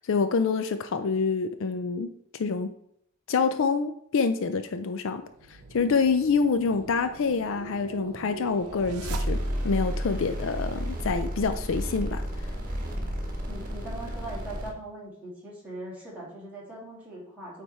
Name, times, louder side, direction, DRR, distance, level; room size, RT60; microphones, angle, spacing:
voice 1, 0.0-2.7 3.3-9.4 9.6-12.2, left 5 dB, 60° left, 9 dB, 0.4 m, -27 dB
sound 1, 5.2-9.8, right 2 dB, 85° right, 0.7 m, -42 dB
sound 2, 9.0-14.7, equal, 40° right, 1.5 m, -31 dB
voice 2, 13.5-17.6, right 1 dB, 5° right, -6 dB, 2.5 m, -40 dB
8.6 x 3.4 x 4.2 m, 0.71 s
head